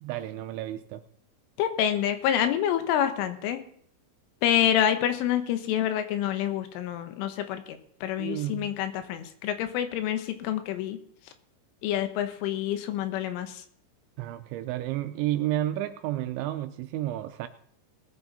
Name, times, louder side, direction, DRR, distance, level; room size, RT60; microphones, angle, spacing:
voice 1, 0.0-1.0 8.2-8.7 14.2-17.5, right 14 dB, 80° right, 9 dB, 2.8 m, -31 dB
voice 2, 1.6-3.6 4.4-11.0 11.8-13.6, left 10 dB, 85° left, 9 dB, 3.6 m, -27 dB
20.0 x 9.1 x 4.1 m, 0.64 s
omnidirectional pair, 5.6 m